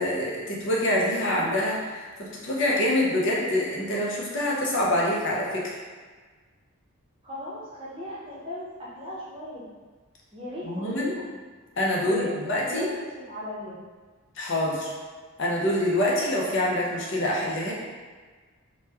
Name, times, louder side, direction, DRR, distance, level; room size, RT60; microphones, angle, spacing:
voice 1, 0.0-5.8 10.6-11.1 11.8-12.9 14.4-14.9 15.4-17.7, left 1 dB, 55° left, -4 dB, 0.6 m, -26 dB
voice 2, 7.2-9.7 10.3-11.3 12.0-12.9 13.3-13.8, left 1 dB, 25° right, -8 dB, 0.7 m, -37 dB
3.0 x 2.2 x 3.3 m, 1.4 s
head